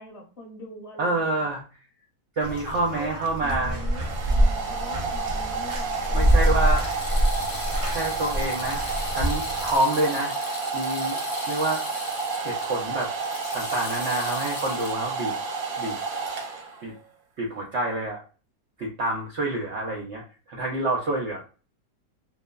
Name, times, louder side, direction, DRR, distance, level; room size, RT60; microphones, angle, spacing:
voice 1, 0.0-1.5 2.4-7.1, left 1 dB, 25° left, -2 dB, 0.9 m, -43 dB
voice 2, 1.0-1.6 2.4-3.9 6.1-7.0 7.9-8.9 9.1-10.4 10.7-11.8 12.4-13.1 13.5-15.3 15.8-15.9 16.8-16.9 17.4-18.2 18.8-21.4, right 2 dB, 90° right, -1 dB, 0.6 m, -27 dB
Bathtub (filling or washing), 2.4-9.8, right 1 dB, 50° right, 0.9 m, -25 dB
Domestic sounds home sounds, 3.3-17.0, right 4 dB, 70° right, 1.1 m, -31 dB
sound 1, 6.1-14.9, left 5 dB, 65° left, 0.8 m, -39 dB
3.1 x 2.0 x 2.2 m, 0.34 s
omnidirectional pair, 1.8 m